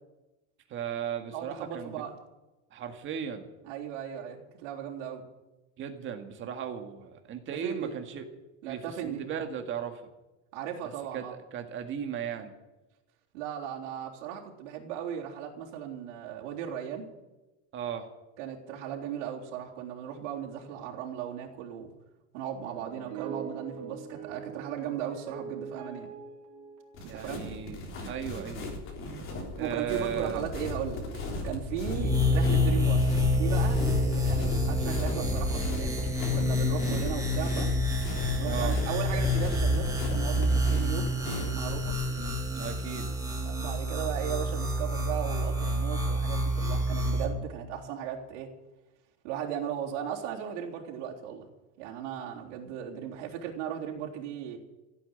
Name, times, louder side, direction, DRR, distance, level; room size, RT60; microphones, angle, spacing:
voice 1, 0.7-2.0 2.7-3.5 5.8-8.3 8.6-10.1 10.8-12.5 17.7-18.1 27.1-28.7 29.5-30.4 36.8-37.1 38.4-38.8 42.2-43.1, right 8 dB, 35° right, 6 dB, 1.9 m, -36 dB
voice 2, 1.3-2.1 3.6-5.2 7.6-7.9 8.6-9.2 10.5-11.4 13.3-17.1 18.4-21.9 22.3-26.1 27.1-27.4 29.6-33.0 33.3-37.8 38.4-41.1 41.5-42.0 43.4-48.5 49.2-51.5 51.8-54.6, right 9 dB, 90° right, -3 dB, 3.7 m, -37 dB
sound 1, 22.6-27.6, right 7 dB, 55° right, 4.0 m, -42 dB
sound 2, 26.9-42.3, left 2 dB, 35° left, 3.5 m, -35 dB
sound 3, 31.9-47.2, left 1 dB, 10° right, 2.4 m, -28 dB
15.5 x 8.7 x 9.3 m, 1.1 s
cardioid pair, 160°, 36 cm